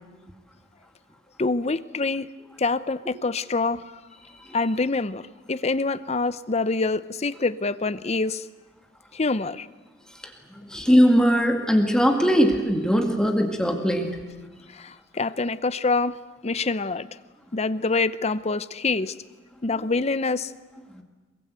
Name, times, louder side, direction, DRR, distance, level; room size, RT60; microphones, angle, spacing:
voice 1, 1.4-2.3 2.6-3.9 4.5-8.4 9.1-9.7 14.7-17.1 17.5-19.1 19.6-20.5, left 3 dB, 35° left, 15 dB, 0.7 m, -26 dB
voice 2, 10.6-14.2 20.9-21.0, equal, 5° left, 3 dB, 1.9 m, -20 dB
23.0 x 22.5 x 8.2 m, 1.3 s
head